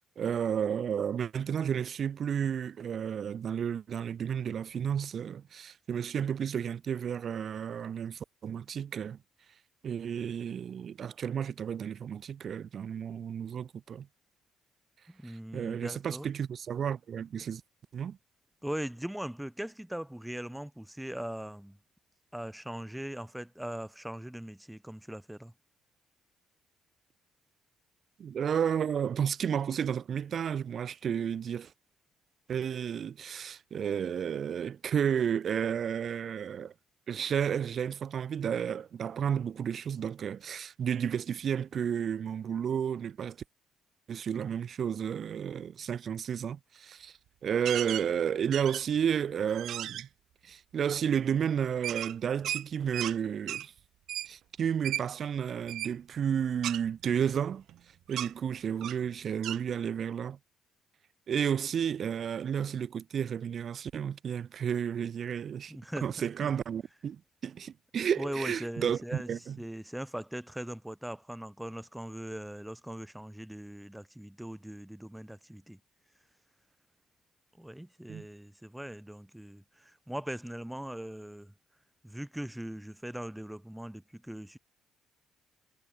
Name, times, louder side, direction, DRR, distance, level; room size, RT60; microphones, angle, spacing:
voice 1, 0.2-9.2 9.8-14.1 15.2-17.6 17.9-18.2 28.2-31.7 32.5-36.7 37.1-43.4 44.1-50.1 50.4-53.7 54.3-57.6 58.1-60.4 61.3-65.7 66.0-69.6 78.1-78.3, right 8 dB, 55° right, 1.0 m, -32 dB
voice 2, 15.1-16.3 18.6-21.8 22.3-25.5 65.7-66.5 68.2-69.3 69.6-75.8 77.5-81.5 82.0-84.6, right 1 dB, 5° right, 7.8 m, -40 dB
sound 1, 47.6-48.1 48.5-49.0 49.5-50.0 51.8-53.2 53.5-53.7 54.1-54.3 54.8-55.0 55.7-55.9 56.6-57.8 58.1-58.3 58.8-59.0 59.4-59.6, right 12 dB, 75° right, 0.6 m, -35 dB
cardioid pair, 80°, 0 cm